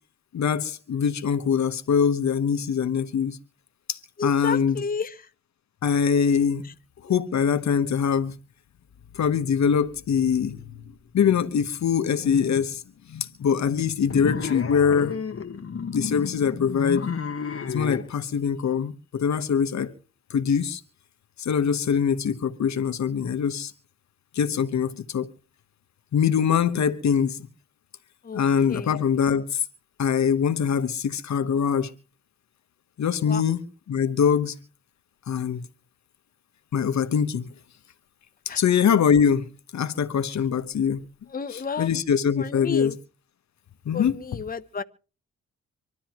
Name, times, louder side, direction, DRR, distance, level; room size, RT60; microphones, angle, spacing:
voice 1, 0.3-3.4 3.9-4.8 5.8-6.7 7.0-8.3 9.1-10.6 11.1-12.8 13.1-15.2 15.9-17.1 17.7-19.9 20.3-20.8 21.4-23.7 24.3-25.3 26.1-27.4 28.3-29.6 30.0-31.9 33.0-33.6 33.9-34.5 35.3-35.6 36.7-37.5 38.5-41.0 41.5-42.9 43.8-44.2, left 7 dB, 70° left, 1.2 m, -23 dB
voice 2, 4.2-5.3 6.6-6.7 28.2-28.4 28.7-28.9 33.2-33.4 38.5-38.6 41.3-41.9 42.4-43.0 43.9-44.8, left 5 dB, 30° left, 0.8 m, -32 dB
sound 1, 14.1-18.1, left 6 dB, 50° left, 1.5 m, -31 dB
25.5 x 12.5 x 3.0 m
cardioid pair, 75°, 29 cm